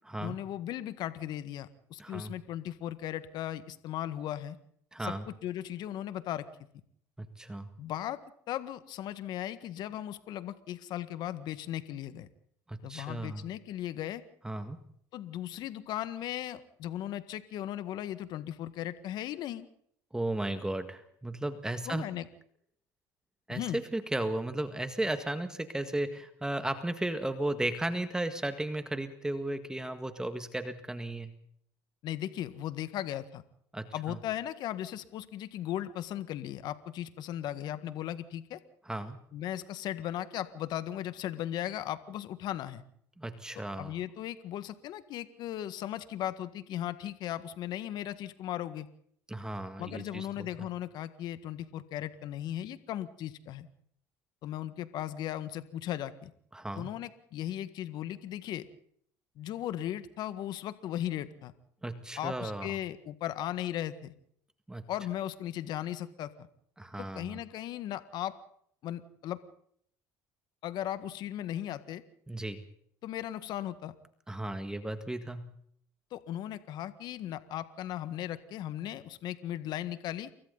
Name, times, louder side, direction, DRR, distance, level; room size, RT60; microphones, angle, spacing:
voice 1, 0.2-4.6 5.0-6.5 7.8-8.2 8.5-12.3 12.8-14.2 15.1-19.7 21.8-22.3 23.5-23.8 32.0-33.4 33.9-38.6 39.3-42.8 43.8-48.9 49.8-53.7 54.4-56.3 56.7-58.6 59.4-61.5 62.2-64.1 64.9-66.5 67.0-68.3 68.8-69.4 70.6-72.0 73.0-73.9 76.1-80.3, left 12 dB, 60° left, 12 dB, 1.7 m, -37 dB
voice 2, 2.0-2.3 4.9-5.2 7.2-7.7 12.7-13.4 14.4-14.8 20.1-22.1 23.5-31.3 33.7-34.2 38.9-39.2 43.2-43.9 49.3-50.7 56.5-56.9 61.8-62.8 64.7-64.8 66.8-67.4 72.3-72.6 74.3-75.4, right 1 dB, 10° right, 9 dB, 1.8 m, -35 dB
28.5 x 23.5 x 4.1 m, 0.67 s
supercardioid pair, 105°, 8 cm